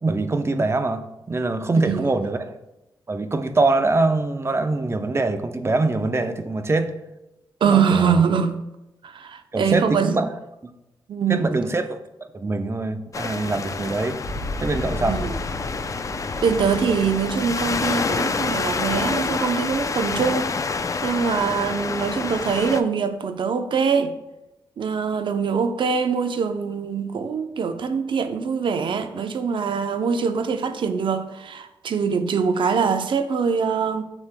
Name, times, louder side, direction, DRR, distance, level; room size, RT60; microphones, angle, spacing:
voice 1, 0.0-2.6 3.1-6.9 7.6-8.2 9.5-10.3 10.6-10.7 11.3-12.0 12.3-14.2 14.6-15.2, right 3 dB, 30° right, 0.7 m, -23 dB
voice 2, 1.7-2.1 7.6-8.6 9.0-10.2 11.1-11.5 15.0-15.4 16.4-20.6 21.0-24.1 24.8-34.0, right 6 dB, 65° right, 0.7 m, -23 dB
sound 1, 13.1-22.8, left 4 dB, 35° left, 0.5 m, -28 dB
Boom, 14.2-20.8, left 1 dB, 75° left, 2.1 m, -35 dB
9.6 x 6.3 x 2.2 m
cardioid pair, 60°, 9 cm